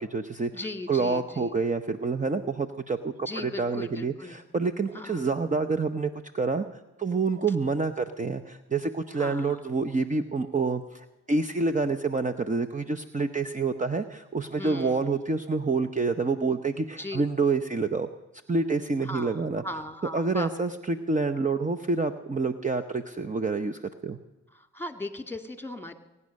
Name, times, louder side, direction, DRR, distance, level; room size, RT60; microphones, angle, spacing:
voice 1, 0.0-0.5 0.9-6.6 7.0-18.1 18.5-19.6 20.1-24.2, right 4 dB, 25° right, 6 dB, 0.8 m, -28 dB
voice 2, 0.5-1.6 3.3-4.4 4.9-5.3 9.1-9.6 14.5-15.4 17.0-17.2 19.0-20.5 24.5-25.9, left 1 dB, 5° left, 8 dB, 2.1 m, -38 dB
22.0 x 9.7 x 6.5 m, 1.1 s
cardioid pair, 55°, 30 cm